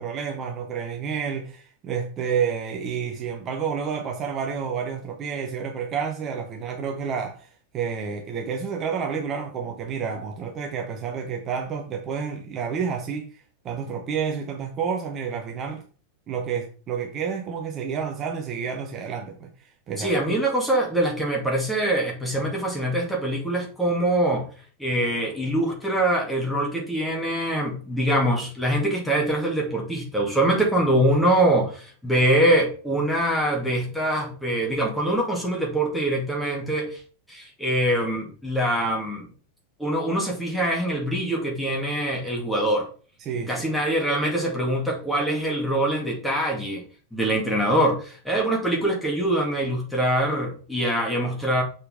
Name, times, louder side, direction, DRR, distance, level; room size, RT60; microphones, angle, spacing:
voice 1, 0.0-15.8 16.3-20.3 43.2-43.5, right 6 dB, 30° right, 1.0 m, -30 dB
voice 2, 20.0-24.5 24.8-37.0 37.3-39.3 39.8-42.9 43.5-46.8 47.1-51.6, right 1 dB, 5° left, 2.2 m, -24 dB
6.8 x 4.4 x 3.7 m
figure-of-eight pair, 90°, 0 cm